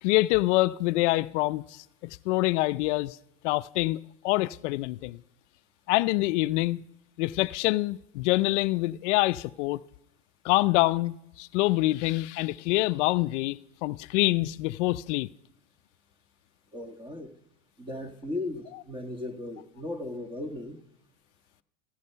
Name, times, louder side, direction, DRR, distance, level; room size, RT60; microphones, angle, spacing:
voice 1, 0.0-3.2 3.4-5.2 5.9-6.8 7.2-9.8 10.4-15.3, left 19 dB, 70° left, 0.6 m, -26 dB
voice 2, 16.7-17.3 17.8-20.8, left 2 dB, 15° right, 1.4 m, -36 dB
16.0 x 14.5 x 5.6 m
supercardioid pair, 135°, 37 cm